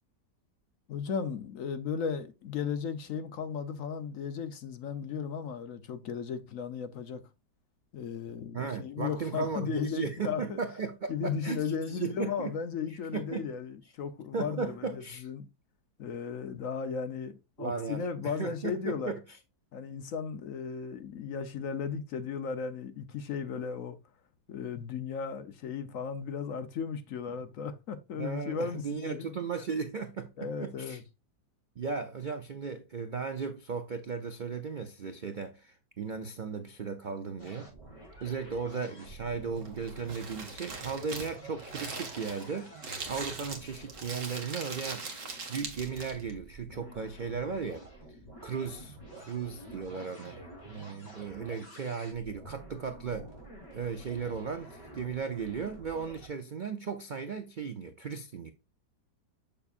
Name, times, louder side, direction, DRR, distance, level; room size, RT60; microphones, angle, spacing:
voice 1, 0.9-7.2 7.9-10.6 11.1-15.5 16.0-19.1 19.7-24.0 24.5-29.4 30.4-31.0, left 6 dB, 60° left, 1.0 m, -35 dB
voice 2, 8.5-12.5 12.9-13.5 14.3-15.3 17.6-19.2 28.2-31.0 31.8-37.7 38.2-45.1 45.5-47.9 48.4-50.4 50.6-53.3 53.7-58.5, right 5 dB, 90° right, 0.4 m, -36 dB
sound 1, 37.4-56.3, right 1 dB, 25° left, 3.9 m, -50 dB
Crumpling crinkling, 39.5-46.3, right 4 dB, 50° right, 1.8 m, -41 dB
7.0 x 7.0 x 2.4 m
omnidirectional pair, 1.8 m